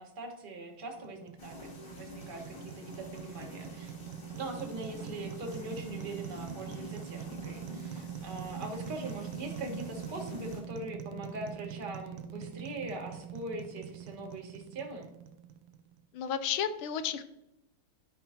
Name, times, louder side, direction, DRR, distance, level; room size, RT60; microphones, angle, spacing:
voice 1, 0.0-3.9 4.3-15.1, right 2 dB, 30° right, 2 dB, 1.2 m, -42 dB
sound 1, 0.8-16.0, right 10 dB, 85° right, 1.5 m, -44 dB
sound 2, 1.4-10.6, left 2 dB, 55° left, 2.5 m, -47 dB
voice 2, 16.1-17.2, left 8 dB, 80° left, 11 dB, 1.4 m, -32 dB
11.0 x 5.5 x 2.8 m, 0.85 s
omnidirectional pair, 2.3 m